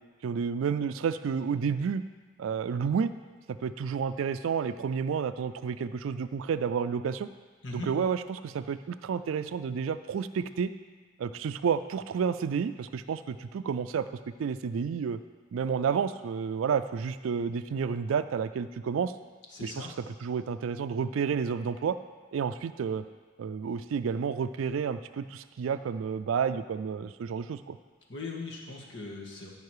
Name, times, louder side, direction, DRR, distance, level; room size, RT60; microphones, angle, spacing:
voice 1, 0.2-2.0 2.4-3.1 3.6-7.3 7.7-10.7 11.2-14.1 14.4-15.2 15.5-19.1 19.6-19.9 20.2-22.0 22.3-23.0 23.4-27.8, right 6 dB, 85° right, 11 dB, 0.3 m, -30 dB
voice 2, 19.5-19.9 28.1-29.5, left 3 dB, 60° left, -2 dB, 1.7 m, -39 dB
14.0 x 5.3 x 4.8 m, 1.5 s
head